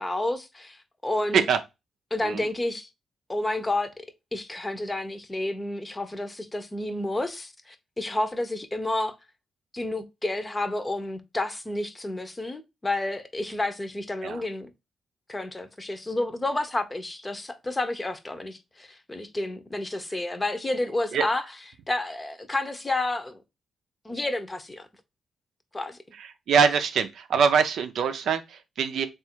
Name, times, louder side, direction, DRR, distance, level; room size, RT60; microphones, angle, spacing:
voice 1, 0.0-1.4 2.1-2.9 3.3-3.9 4.3-9.2 9.7-14.7 15.3-21.5 21.9-23.4 24.0-24.9 25.7-26.0, left 2 dB, 20° left, 0.7 m, -30 dB
voice 2, 26.2-29.1, right 6 dB, 80° right, 0.5 m, -24 dB
3.5 x 2.5 x 4.4 m
cardioid pair, 75°, 0 cm